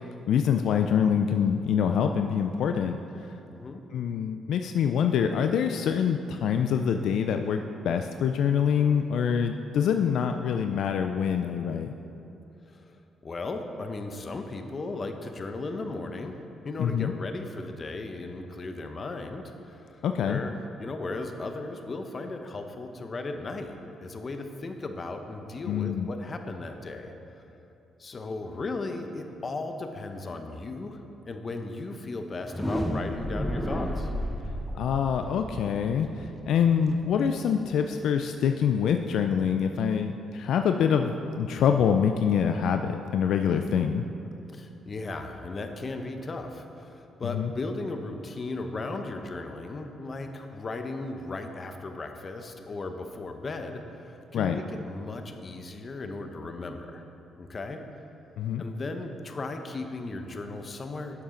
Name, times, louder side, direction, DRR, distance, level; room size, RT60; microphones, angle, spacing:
voice 1, 0.3-3.0 3.9-7.6 7.8-11.9 16.8-17.1 20.0-20.4 25.7-26.1 34.7-44.0 47.2-47.5 54.3-54.6 58.4-58.6, left 7 dB, 75° left, 6 dB, 0.3 m, -25 dB
voice 2, 3.5-3.8 12.7-13.0 13.2-16.4 16.6-23.7 24.0-27.5 28.0-34.1 44.5-57.0 57.4-57.8 58.6-61.2, left 3 dB, 40° left, 6 dB, 0.8 m, -36 dB
sound 1, 32.4-38.2, equal, ahead, 0.9 m, -33 dB
11.0 x 7.1 x 3.8 m, 2.8 s
cardioid pair, 90°, 0 cm